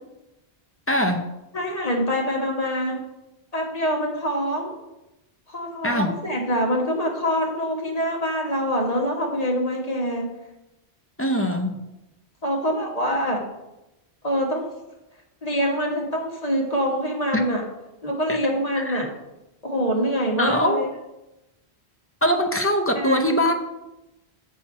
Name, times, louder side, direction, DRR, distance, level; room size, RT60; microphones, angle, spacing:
voice 1, 0.9-1.3 5.8-6.2 11.2-11.8 17.3-17.4 18.3-18.4 18.8-19.1 20.4-20.8 22.2-23.5, left 1 dB, 15° left, 3 dB, 0.5 m, -22 dB
voice 2, 1.5-3.0 3.5-4.7 5.5-10.3 12.4-13.4 14.2-14.7 15.4-17.6 18.0-19.1 19.6-20.9 22.9-23.2, equal, 35° left, -1 dB, 1.6 m, -25 dB
7.4 x 5.9 x 4.4 m, 0.95 s
omnidirectional pair, 1.1 m